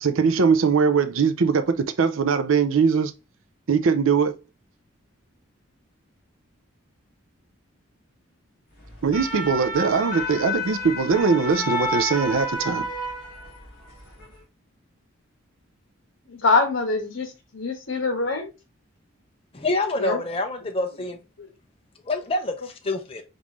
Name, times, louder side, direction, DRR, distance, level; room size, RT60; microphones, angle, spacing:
voice 1, 0.0-3.1 3.7-4.4 9.0-12.9, right 5 dB, 70° right, 0.5 m, -21 dB
sound 1, 8.9-13.6 14.0-14.2, equal, 40° left, 2.2 m, -30 dB
voice 2, 16.3-17.3 17.5-18.5 20.0-20.2, left 3 dB, 65° left, 1.2 m, -23 dB
voice 3, 19.5-21.2 22.0-23.2, left 2 dB, 25° left, 0.5 m, -27 dB
5.2 x 2.6 x 3.0 m
head